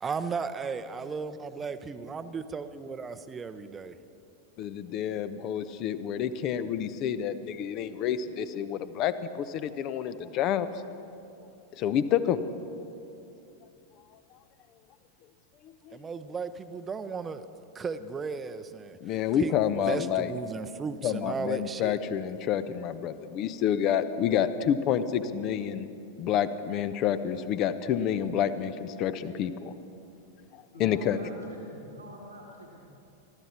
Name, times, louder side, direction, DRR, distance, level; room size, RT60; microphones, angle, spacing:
voice 1, 0.0-4.0 15.9-17.5 17.7-22.0, right 5 dB, 20° right, 11 dB, 0.7 m, -35 dB
voice 2, 4.6-10.7 11.8-12.4 12.7-12.8 15.9-16.0 19.0-20.3 21.0-25.9 26.2-29.7 30.8-31.2, left 9 dB, 40° left, 13 dB, 0.7 m, -28 dB
voice 3, 30.7-32.8, equal, 80° right, -3 dB, 1.8 m, -46 dB
23.5 x 13.5 x 4.3 m, 2.7 s
figure-of-eight pair, 90°, 0 cm